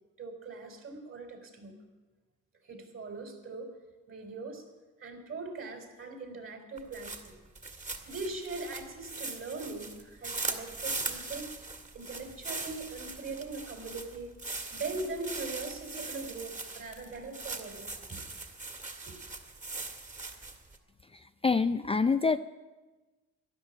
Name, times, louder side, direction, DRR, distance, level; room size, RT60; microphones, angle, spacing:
voice 1, 0.2-1.7 2.6-3.7 4.1-4.7 5.0-7.4 8.1-11.5 11.9-14.3 14.7-18.2 19.1-19.2, right 3 dB, 45° right, 5 dB, 3.9 m, -41 dB
sound 1, 6.8-20.8, right 3 dB, 25° right, 2.0 m, -40 dB
voice 2, 21.1-22.4, left 4 dB, 20° left, 10 dB, 0.4 m, -26 dB
13.0 x 11.0 x 9.1 m, 1.2 s
cardioid pair, 90°, 30 cm